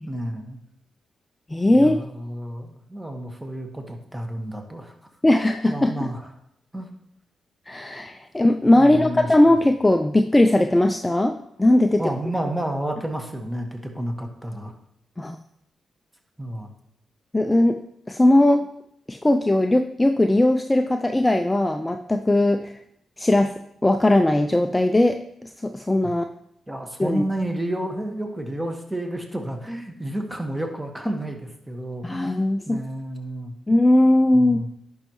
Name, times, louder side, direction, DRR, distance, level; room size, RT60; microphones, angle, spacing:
voice 1, 0.1-0.6 1.6-4.9 5.6-6.3 6.7-6.9 8.7-9.6 11.8-14.7 16.4-16.7 26.7-32.4 32.7-33.5 34.3-34.7, right 1 dB, 15° right, 3 dB, 1.6 m, -30 dB
voice 2, 1.5-2.0 5.2-5.9 7.7-12.0 15.2-15.4 17.3-17.8 18.1-18.6 19.1-22.8 23.2-26.2 27.0-27.2 32.0-32.8 33.7-34.6, left 1 dB, 20° left, 6 dB, 0.5 m, -19 dB
10.5 x 5.5 x 3.1 m, 0.73 s
supercardioid pair, 50°, 0 cm